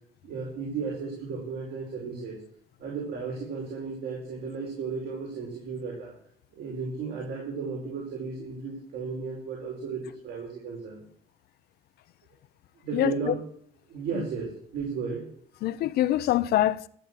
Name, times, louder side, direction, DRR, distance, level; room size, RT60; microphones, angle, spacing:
voice 1, 0.2-2.4 2.8-6.1 6.5-11.0 12.8-13.4 13.9-15.2, right 5 dB, 75° right, 5.1 m, -34 dB
voice 2, 12.9-13.3 14.2-14.3 15.6-16.9, left 13 dB, 70° left, 0.7 m, -25 dB
13.5 x 8.4 x 7.5 m
cardioid pair, 110°, 17 cm